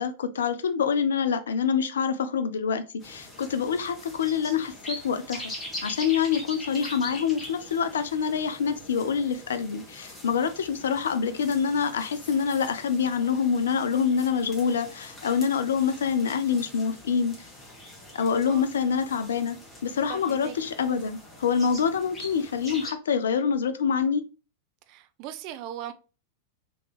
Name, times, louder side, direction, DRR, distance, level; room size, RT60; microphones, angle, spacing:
voice 1, 0.0-5.4 5.8-17.5 18.1-24.2, left 6 dB, 65° left, 0.5 m, -26 dB
sound 1, 3.0-22.9, left 1 dB, 15° left, 1.6 m, -43 dB
voice 2, 20.1-20.5 24.9-25.9, right 11 dB, 45° right, 0.4 m, -38 dB
3.8 x 3.4 x 3.1 m
figure-of-eight pair, 90°, 0 cm